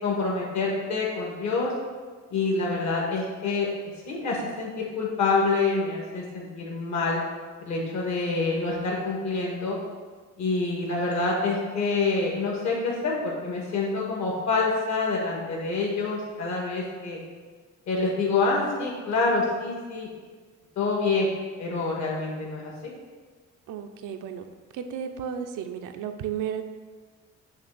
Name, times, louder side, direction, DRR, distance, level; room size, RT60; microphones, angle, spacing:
voice 1, 0.0-1.7 2.3-3.7 4.1-7.2 7.6-9.8 10.4-17.2 17.9-20.1 20.8-21.3 21.6-22.7, left 3 dB, 65° left, -2 dB, 1.8 m, -26 dB
voice 2, 23.7-24.5 24.7-26.6, right 8 dB, 90° right, 6 dB, 0.6 m, -33 dB
6.5 x 3.3 x 6.0 m, 1.5 s
cardioid pair, 90°, 30 cm